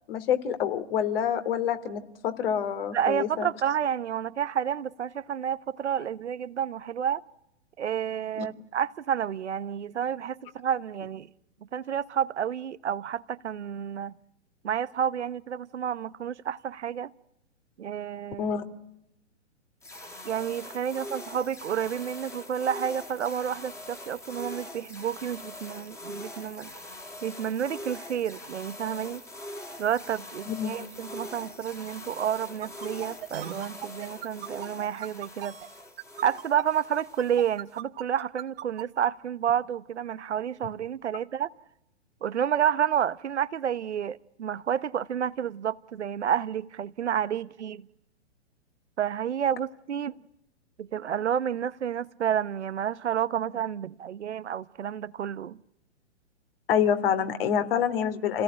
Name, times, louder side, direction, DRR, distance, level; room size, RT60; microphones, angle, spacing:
voice 1, 0.1-3.5 18.4-18.6 30.5-30.7 56.7-58.4, left 8 dB, 50° left, 3.1 m, -27 dB
voice 2, 2.9-7.2 7.8-11.3 11.7-14.1 14.6-17.1 17.8-18.5 20.2-26.7 27.2-29.2 29.8-35.6 36.2-41.5 42.2-47.9 49.0-50.2 50.8-55.6, right 9 dB, 70° right, 1.1 m, -30 dB
sound 1, 19.8-37.8, left 1 dB, 10° left, 2.6 m, -43 dB
sound 2, 32.6-38.8, right 12 dB, 55° right, 2.1 m, -38 dB
28.5 x 18.0 x 10.0 m
hypercardioid pair, 120°, 36 cm